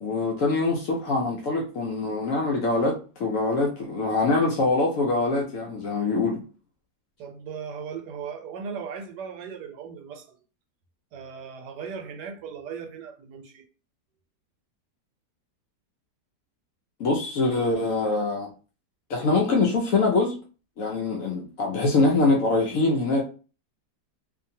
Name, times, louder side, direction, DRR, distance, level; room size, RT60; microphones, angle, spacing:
voice 1, 0.0-6.4 17.0-18.5 19.1-20.4 20.8-23.2, left 3 dB, 70° left, 0.8 m, -24 dB
voice 2, 7.2-10.4 11.1-13.6, right 6 dB, 80° right, 1.2 m, -37 dB
2.7 x 2.5 x 2.7 m
omnidirectional pair, 1.8 m